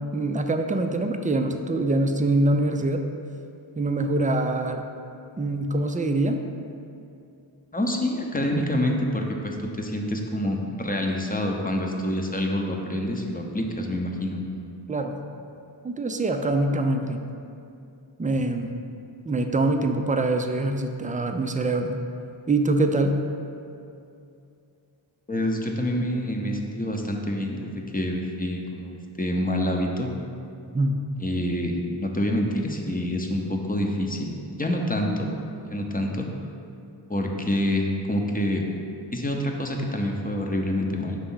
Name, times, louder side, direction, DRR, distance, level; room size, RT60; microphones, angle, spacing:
voice 1, 0.0-3.0 3.8-4.8 5.4-6.4 14.9-15.2 15.8-17.2 18.2-18.8 19.3-22.0 22.5-23.2 30.7-31.0, right 2 dB, 20° right, 6 dB, 0.4 m, -24 dB
voice 2, 7.7-14.4 25.3-30.1 31.2-35.3 35.7-36.3 37.1-38.6 39.1-41.2, left 1 dB, 20° left, 1 dB, 0.7 m, -27 dB
6.0 x 3.3 x 5.6 m, 2.6 s
wide cardioid pair, 50°, 47 cm